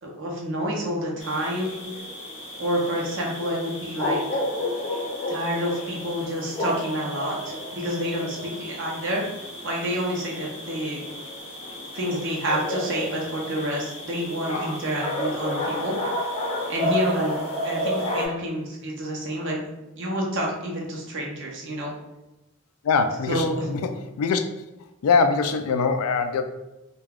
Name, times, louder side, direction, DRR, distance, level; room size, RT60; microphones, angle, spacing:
voice 1, 0.0-1.8 2.6-4.2 5.3-9.2 9.6-11.0 11.9-16.0 16.7-19.7 19.9-21.9 23.3-23.7, equal, 60° right, -2 dB, 0.6 m, -28 dB
sound 1, 1.2-18.3, left 1 dB, 30° left, 0.6 m, -31 dB
voice 2, 22.8-23.8 24.2-24.4 25.0-26.4, left 5 dB, 90° left, 7 dB, 0.3 m, -22 dB
2.3 x 2.3 x 3.4 m, 0.97 s
head